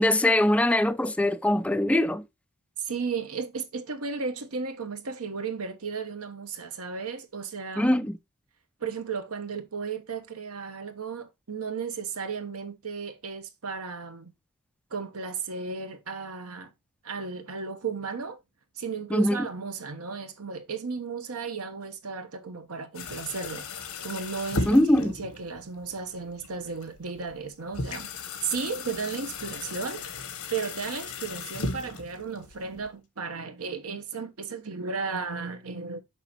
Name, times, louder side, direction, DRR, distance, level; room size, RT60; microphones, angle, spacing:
voice 1, 0.0-2.2 7.8-8.2 19.1-19.5 24.7-25.1, left 1 dB, 5° left, 0.3 m, -22 dB
voice 2, 2.8-8.1 8.8-14.3 14.9-16.7 17.0-18.4 18.8-23.7 24.0-28.1 28.4-30.0 30.5-36.0, right 5 dB, 80° right, 1.0 m, -34 dB
sound 1, 22.9-32.9, left 3 dB, 85° left, 1.1 m, -37 dB
6.5 x 5.0 x 3.0 m
head